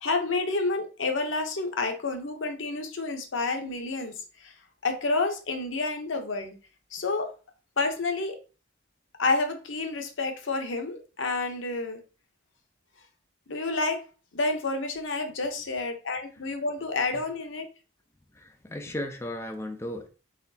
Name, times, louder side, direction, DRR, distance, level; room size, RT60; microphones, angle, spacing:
voice 1, 0.0-4.1 4.4-4.5 4.8-6.6 6.9-7.3 7.8-8.4 9.2-12.0 13.5-14.0 14.3-17.7, left 3 dB, 80° left, 6 dB, 0.8 m, -29 dB
voice 2, 18.3-20.1, left 1 dB, 15° left, 3 dB, 0.5 m, -35 dB
4.1 x 4.1 x 2.7 m, 0.34 s
head